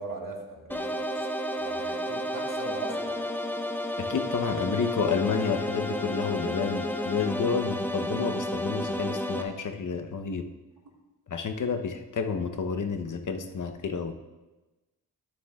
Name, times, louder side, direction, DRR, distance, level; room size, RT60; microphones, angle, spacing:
voice 1, 0.0-3.2, right 2 dB, 55° right, 0 dB, 1.8 m, -40 dB
sound 1, 0.7-9.4, left 1 dB, 5° left, 0.8 m, -31 dB
voice 2, 4.0-10.5 11.3-14.1, left 5 dB, 50° left, 6 dB, 0.9 m, -30 dB
13.0 x 7.0 x 2.4 m, 1.1 s
cardioid pair, 55°, 38 cm